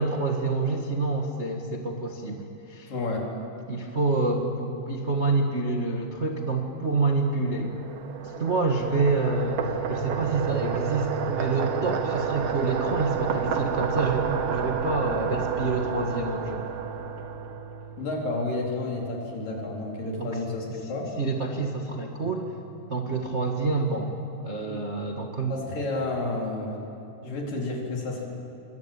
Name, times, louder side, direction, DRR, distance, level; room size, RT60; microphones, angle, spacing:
voice 1, 0.0-2.9 3.7-7.8 8.4-16.6 20.2-20.3 21.2-22.4 22.9-24.1 24.4-25.6, right 3 dB, 30° right, 1 dB, 1.3 m, -27 dB
voice 2, 2.9-3.3 18.0-21.1 24.6-24.9 25.5-26.7 27.2-28.2, left 2 dB, 70° left, -1 dB, 5.8 m, -31 dB
sound 1, 7.2-17.9, right 7 dB, 75° right, 3.5 m, -30 dB
sound 2, 9.6-25.4, right 4 dB, 30° left, 4.2 m, -42 dB
27.0 x 23.5 x 8.9 m, 3.0 s
omnidirectional pair, 4.0 m